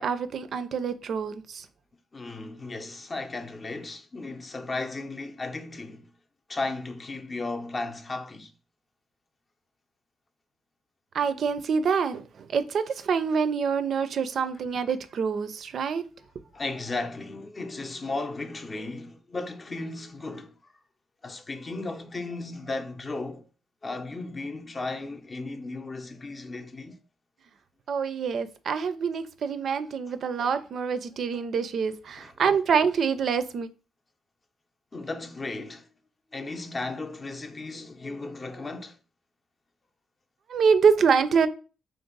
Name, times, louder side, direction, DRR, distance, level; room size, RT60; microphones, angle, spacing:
voice 1, 0.0-1.7 11.1-16.1 27.9-33.7 40.5-41.5, right 6 dB, 55° right, 0.4 m, -26 dB
voice 2, 2.1-6.1 6.5-8.5 16.5-20.5 21.2-23.5 23.8-27.0 32.1-32.3 34.9-35.9 36.3-39.0, left 3 dB, 30° left, 0.5 m, -35 dB
3.4 x 2.6 x 3.8 m
cardioid pair, 90°, 0 cm